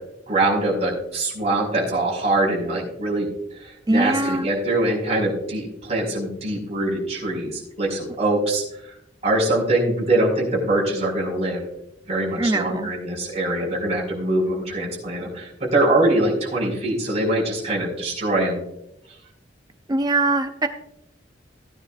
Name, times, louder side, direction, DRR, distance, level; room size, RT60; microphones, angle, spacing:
voice 1, 0.3-3.3 3.6-8.6 9.2-11.6 12.1-18.6, right 1 dB, 35° right, -3 dB, 5.1 m, -23 dB
voice 2, 3.9-4.5 12.4-12.9 19.9-20.7, right 2 dB, 20° right, 8 dB, 0.5 m, -22 dB
17.0 x 9.9 x 2.5 m, 0.81 s
head